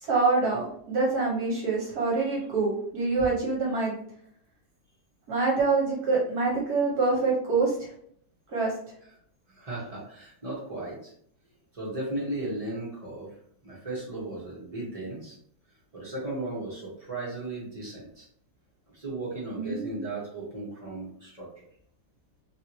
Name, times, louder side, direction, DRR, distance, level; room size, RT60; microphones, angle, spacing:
voice 1, 0.0-3.9 5.3-7.9 8.5-8.7 19.5-20.0, right 3 dB, 60° right, -4 dB, 1.2 m, -26 dB
voice 2, 9.5-11.1 11.7-13.4 13.6-15.4 15.9-18.3 18.9-21.6, right 2 dB, 40° right, -6 dB, 0.5 m, -36 dB
3.2 x 2.8 x 2.9 m, 0.65 s
omnidirectional pair, 2.2 m